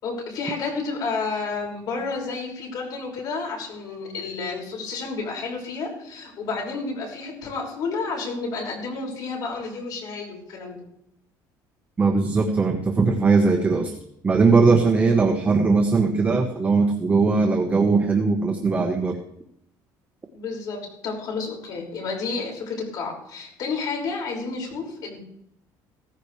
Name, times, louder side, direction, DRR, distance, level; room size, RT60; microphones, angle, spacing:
voice 1, 0.0-10.8 20.3-25.2, left 4 dB, 55° left, 0 dB, 5.8 m, -31 dB
voice 2, 12.0-13.9 14.2-19.2, right 4 dB, 20° right, 4 dB, 1.2 m, -19 dB
17.0 x 15.0 x 3.3 m, 0.74 s
cardioid pair, 150°, 8 cm